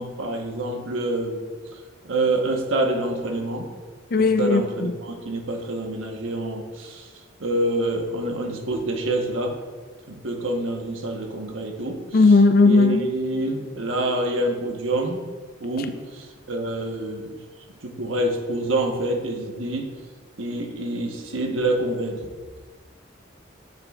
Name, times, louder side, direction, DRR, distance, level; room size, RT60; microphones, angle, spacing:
voice 1, 0.0-1.4 2.0-3.7 4.2-7.1 7.4-9.5 10.1-12.0 12.6-15.2 15.6-17.3 17.8-19.9 20.4-22.3, right 1 dB, 80° right, 2 dB, 1.2 m, -26 dB
voice 2, 4.1-5.0 12.1-13.1, left 3 dB, 45° left, 9 dB, 0.4 m, -17 dB
9.8 x 7.0 x 2.4 m, 1.4 s
head